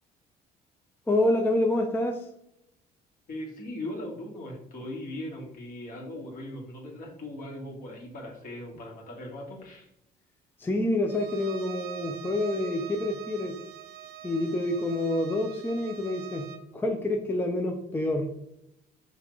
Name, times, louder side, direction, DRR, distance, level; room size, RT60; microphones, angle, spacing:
voice 1, 1.1-2.2 10.6-13.6 14.2-16.5 16.7-18.3, left 1 dB, 10° left, 2 dB, 0.5 m, -27 dB
voice 2, 3.3-9.9, left 1 dB, 55° left, -2 dB, 1.7 m, -39 dB
Bowed string instrument, 11.1-16.7, right 10 dB, 65° right, 0.4 m, -44 dB
5.6 x 2.5 x 3.1 m, 0.79 s
cardioid pair, 110°, 17 cm